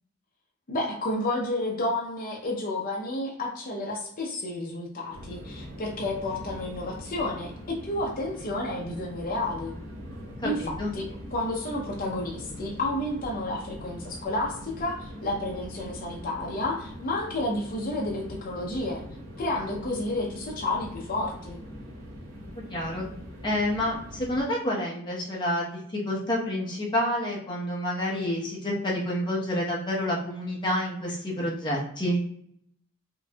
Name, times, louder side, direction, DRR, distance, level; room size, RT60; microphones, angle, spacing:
voice 1, 0.7-9.7 10.4-19.0 19.4-21.6, left 1 dB, 45° left, -2 dB, 0.6 m, -31 dB
sound 1, 5.1-24.4, equal, 85° right, 1.4 m, -42 dB
voice 2, 10.4-10.9 22.7-23.1 23.4-32.2, left 1 dB, 25° left, -4 dB, 1.0 m, -28 dB
4.6 x 2.6 x 2.3 m, 0.67 s
head